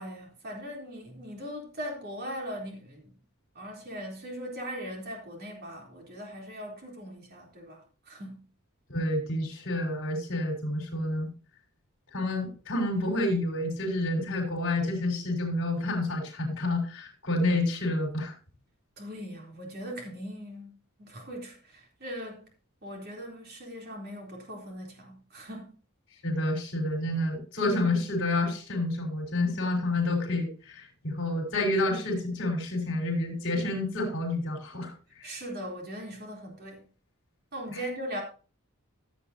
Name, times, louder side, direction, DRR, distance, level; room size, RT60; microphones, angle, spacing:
voice 1, 0.0-3.1 3.5-7.8 8.1-8.5 19.0-20.7 21.0-22.4 22.8-25.7 35.2-36.9 37.5-38.2, equal, 50° right, 3.9 m, -40 dB
voice 2, 8.9-11.3 12.1-18.3 26.2-35.3 37.7-37.8, left 2 dB, 60° left, 5.1 m, -29 dB
15.5 x 8.3 x 2.9 m
head